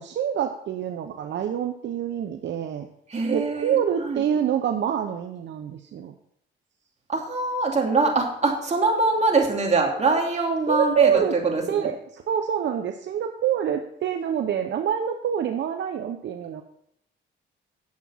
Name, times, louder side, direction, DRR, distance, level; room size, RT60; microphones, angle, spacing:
voice 1, 0.0-2.9 3.3-6.1 10.7-11.3 11.7-16.6, right 8 dB, 65° right, 6 dB, 0.8 m, -26 dB
voice 2, 3.1-4.2 7.1-11.9, right 3 dB, 35° right, 0 dB, 2.8 m, -23 dB
9.7 x 7.5 x 5.7 m, 0.72 s
cardioid pair, 90°, 20 cm